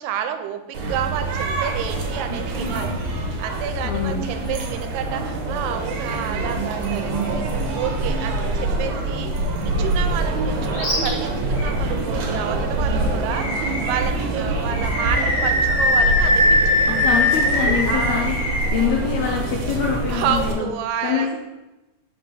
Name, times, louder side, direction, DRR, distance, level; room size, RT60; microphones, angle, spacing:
voice 1, 0.0-9.3 9.6-16.9 17.9-18.4 20.1-21.4, right 9 dB, 90° right, 7 dB, 2.2 m, -30 dB
sound 1, 0.7-20.5, right 2 dB, 70° right, 2.0 m, -25 dB
voice 2, 3.8-4.2 16.9-18.4 18.7-20.7 21.0-21.4, left 6 dB, 80° left, 0 dB, 1.6 m, -24 dB
Animal, 10.7-11.1 11.6-11.7 13.3-14.1 14.7-18.7, left 1 dB, 60° left, 2.5 m, -21 dB
sound 2, 13.6-19.0, right 3 dB, 55° right, 2.4 m, -37 dB
5.7 x 3.4 x 5.9 m, 1.0 s
omnidirectional pair, 3.8 m